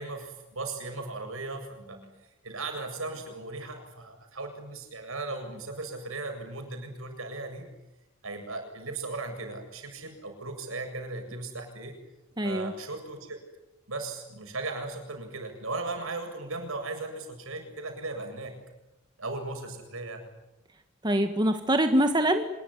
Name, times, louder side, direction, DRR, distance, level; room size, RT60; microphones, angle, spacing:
voice 1, 0.0-2.0 2.4-7.7 8.2-12.0 12.4-13.4 13.9-18.6 19.2-20.2, right 3 dB, 70° right, 5 dB, 7.6 m, -37 dB
voice 2, 12.4-12.7 21.0-22.5, right 1 dB, 20° right, 6 dB, 1.6 m, -24 dB
26.0 x 22.0 x 9.9 m, 0.94 s
head